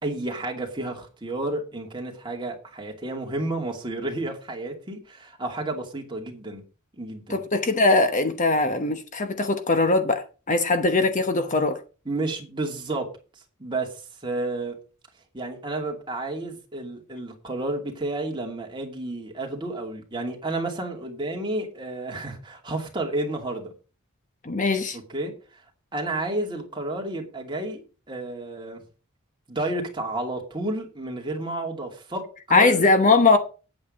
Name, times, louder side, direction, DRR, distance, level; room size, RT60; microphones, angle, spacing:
voice 1, 0.0-6.6 7.0-7.4 12.1-13.1 13.6-13.9 14.2-14.8 15.3-23.7 25.1-25.6 25.9-27.8 28.1-28.8 29.5-32.2 32.5-32.9, right 2 dB, 20° right, 2.5 m, -31 dB
voice 2, 7.3-11.8 24.4-25.0 32.5-33.4, left 3 dB, 35° left, 1.0 m, -21 dB
9.2 x 8.6 x 5.2 m
head